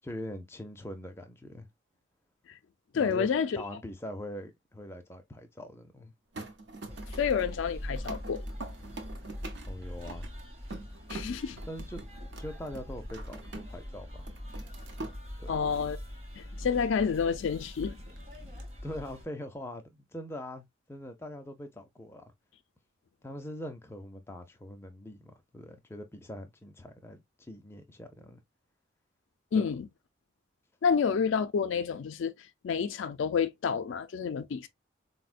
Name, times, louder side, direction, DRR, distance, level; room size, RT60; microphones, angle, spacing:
voice 1, 0.0-1.7 2.9-3.3 3.5-6.1 9.7-10.3 11.7-12.0 12.4-14.2 15.4-15.6 18.8-22.3 23.2-28.4 29.5-29.7, left 1 dB, 10° left, 0.5 m, -42 dB
voice 2, 2.9-3.6 7.1-8.5 11.1-11.6 15.5-16.0 16.4-18.0 29.5-29.9 30.8-32.3 32.6-34.7, left 6 dB, 70° left, 0.4 m, -29 dB
sound 1, 6.3-13.9 14.2-15.2 17.8-18.6, right 2 dB, 60° right, 0.6 m, -45 dB
sound 2, 6.9-19.2, equal, 30° right, 0.9 m, -42 dB
4.1 x 2.1 x 2.3 m
head